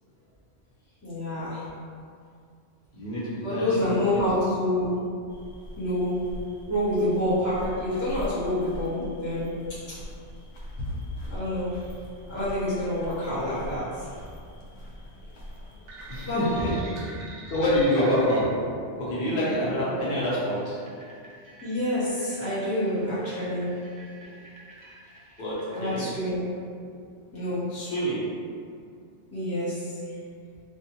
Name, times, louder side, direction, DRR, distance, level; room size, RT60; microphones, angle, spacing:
voice 1, 1.0-1.6 3.4-4.9 5.8-6.2 6.7-9.5 11.3-11.7 12.3-14.1 16.2-16.5 21.6-23.7 25.7-26.4 27.3-27.6 29.3-30.0, left 1 dB, 20° left, -12 dB, 0.4 m, -27 dB
voice 2, 2.9-4.4 9.0-9.1 16.1-16.7 17.0-18.5 19.0-20.8 25.4-26.1 27.7-28.3, equal, 50° left, -8 dB, 0.8 m, -27 dB
sound 1, 5.3-16.7, left 1 dB, 85° left, 1.0 m, -41 dB
sound 2, 15.9-26.1, right 1 dB, 50° right, 0.6 m, -43 dB
2.5 x 2.5 x 2.7 m, 2.3 s
omnidirectional pair, 1.2 m